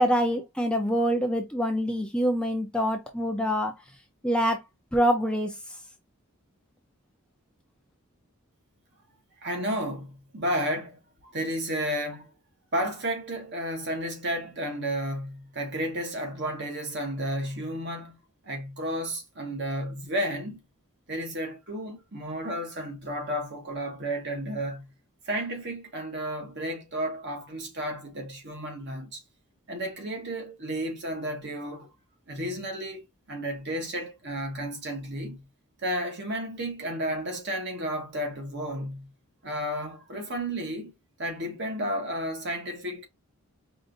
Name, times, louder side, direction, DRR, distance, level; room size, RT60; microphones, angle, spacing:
voice 1, 0.0-3.7 4.2-4.6 4.9-5.6, equal, 5° left, 0.5 m, -25 dB
voice 2, 9.4-12.3 12.7-18.2 18.4-20.6 21.1-24.9 25.3-29.2 29.7-31.9 32.3-35.4 35.8-39.1 39.4-40.9 41.2-43.1, equal, 50° right, 1.1 m, -32 dB
5.1 x 2.5 x 2.5 m
head